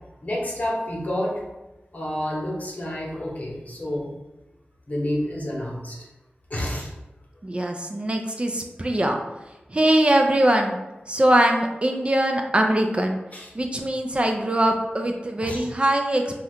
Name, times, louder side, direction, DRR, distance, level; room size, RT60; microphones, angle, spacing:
voice 1, 0.2-1.4 1.9-4.1 4.9-6.0 6.5-6.9 13.3-13.5 15.4-15.7, left 1 dB, 45° left, -3 dB, 0.9 m, -29 dB
voice 2, 7.4-9.2 9.7-10.8 11.1-13.2 13.5-16.3, right 1 dB, 30° right, 3 dB, 0.3 m, -22 dB
2.7 x 2.3 x 3.4 m, 1.0 s
wide cardioid pair, 55°, 4 cm